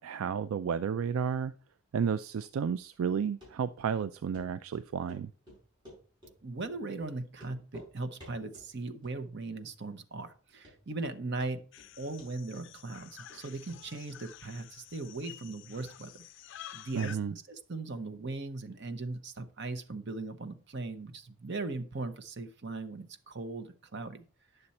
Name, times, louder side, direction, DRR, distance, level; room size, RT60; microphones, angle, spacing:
voice 1, 0.0-1.5 1.9-5.3 16.9-17.3, right 7 dB, 70° right, 14 dB, 0.3 m, -32 dB
Run, 3.4-3.5 3.9-4.0 4.3-4.5 4.7-6.3 6.6-6.7 7.0-7.1 7.4-7.9 8.2-8.7 9.0-9.5 9.8-9.9 10.3-10.4 10.6-11.1 11.4-11.9 12.2-13.4 13.7-13.8 14.1-14.2, left 1 dB, 20° right, 5.5 m, -52 dB
voice 2, 6.4-11.6 12.0-16.2 16.7-24.2, right 3 dB, 50° right, 9 dB, 0.8 m, -39 dB
sound 1, 11.7-17.2, left 11 dB, 55° left, 0.4 m, -50 dB
9.8 x 6.8 x 4.2 m, 0.39 s
head